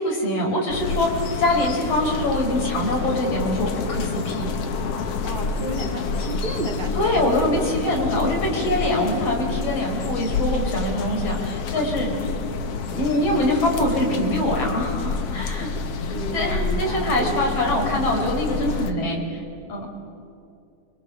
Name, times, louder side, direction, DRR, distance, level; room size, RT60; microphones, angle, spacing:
voice 1, 0.0-4.5 6.9-12.1 12.9-15.7 16.3-19.2 19.7-19.9, left 1 dB, 35° left, 0 dB, 5.5 m, -24 dB
sound 1, 0.7-18.9, left 4 dB, 75° left, 1.4 m, -28 dB
voice 2, 5.2-7.7 16.1-17.5, right 2 dB, 25° right, 1 dB, 1.2 m, -32 dB
26.5 x 23.0 x 6.9 m, 2.5 s
omnidirectional pair, 4.6 m